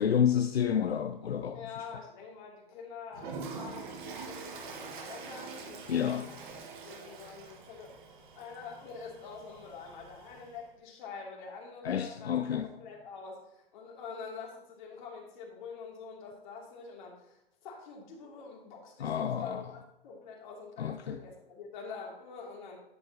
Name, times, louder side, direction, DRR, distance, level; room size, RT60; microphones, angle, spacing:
voice 1, 0.0-1.6 5.9-6.3 11.8-12.7 19.0-19.6 20.8-21.2, left 8 dB, 85° left, 0.6 m, -29 dB
voice 2, 1.5-7.9 8.3-22.8, left 5 dB, 50° left, 2.8 m, -46 dB
Toilet flush, 3.1-10.6, right 4 dB, 50° right, 1.6 m, -45 dB
10.0 x 7.7 x 2.9 m
figure-of-eight pair, 115°, 30 cm